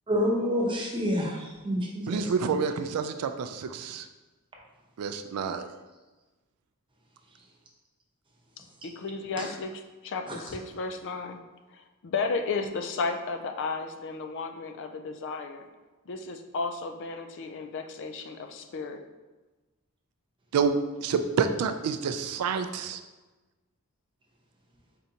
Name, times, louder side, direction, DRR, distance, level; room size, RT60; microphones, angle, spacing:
voice 1, 0.1-2.3 9.4-9.5 10.3-10.4, equal, 25° right, -2 dB, 0.8 m, -28 dB
voice 2, 2.1-4.1 5.0-5.7 20.5-23.0, right 5 dB, 80° right, 8 dB, 0.3 m, -28 dB
voice 3, 8.6-11.4 11.7-15.7 16.1-19.0, left 4 dB, 55° left, 6 dB, 0.4 m, -34 dB
4.4 x 3.8 x 2.8 m, 1.2 s
head